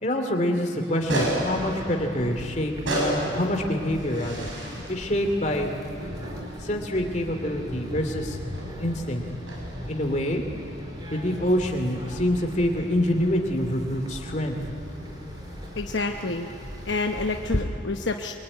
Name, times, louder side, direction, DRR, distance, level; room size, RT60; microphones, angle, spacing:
voice 1, 0.0-5.7 6.6-8.4 8.8-9.2 9.9-10.4 11.1-14.5, left 1 dB, 35° left, 4 dB, 2.6 m, -26 dB
sound 1, 0.7-11.7, right 1 dB, 85° right, 7.0 m, -34 dB
sound 2, 1.2-17.6, equal, 25° right, 4.9 m, -38 dB
voice 2, 15.8-16.5 16.8-18.3, left 3 dB, 70° left, 3 dB, 1.0 m, -28 dB
23.5 x 23.0 x 9.8 m, 2.7 s
head